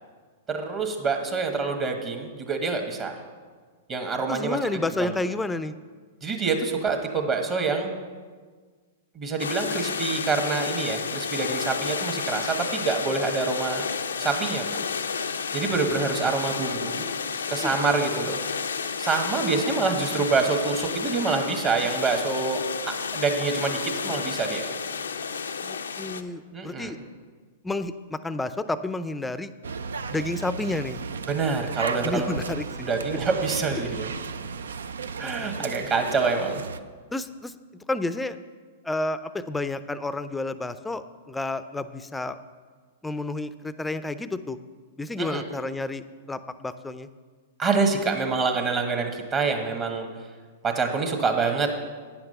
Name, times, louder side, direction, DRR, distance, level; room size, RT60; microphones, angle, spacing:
voice 1, 0.5-3.2 3.9-4.6 5.0-5.2 6.2-7.9 9.1-13.8 14.2-14.6 15.5-17.0 17.5-18.4 19.0-24.6 26.5-26.9 31.3-32.4 32.8-34.1 35.2-36.6 45.2-45.4 47.6-50.1 50.6-51.7, right 4 dB, 30° right, 3 dB, 1.2 m, -26 dB
voice 2, 4.3-5.7 17.6-17.7 25.6-27.0 27.6-29.5 30.1-31.0 32.0-33.2 35.2-35.9 37.1-37.6 37.9-38.4 38.8-42.4 43.0-44.6 45.0-47.1, left 2 dB, 10° left, 13 dB, 0.4 m, -31 dB
sound 1, 9.4-26.2, left 6 dB, 90° left, 0.5 m, -31 dB
sound 2, 29.6-36.8, right 5 dB, 85° right, 0.4 m, -34 dB
9.3 x 5.9 x 6.6 m, 1.5 s
hypercardioid pair, 120°, 0 cm